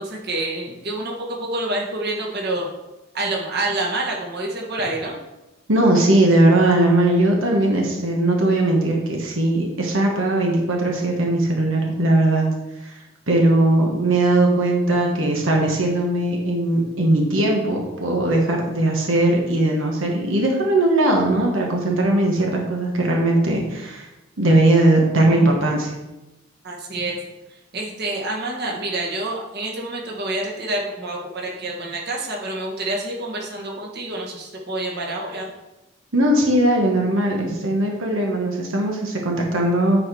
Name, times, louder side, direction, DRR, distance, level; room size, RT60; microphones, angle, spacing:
voice 1, 0.0-2.7 3.1-5.2 26.6-27.2 27.7-35.5, right 2 dB, 55° right, -1 dB, 1.6 m, -27 dB
voice 2, 5.7-12.5 12.8-13.0 13.3-24.1 24.4-25.9 36.1-40.0, right 1 dB, 85° right, 0 dB, 1.3 m, -19 dB
9.5 x 4.4 x 4.7 m, 1.0 s
head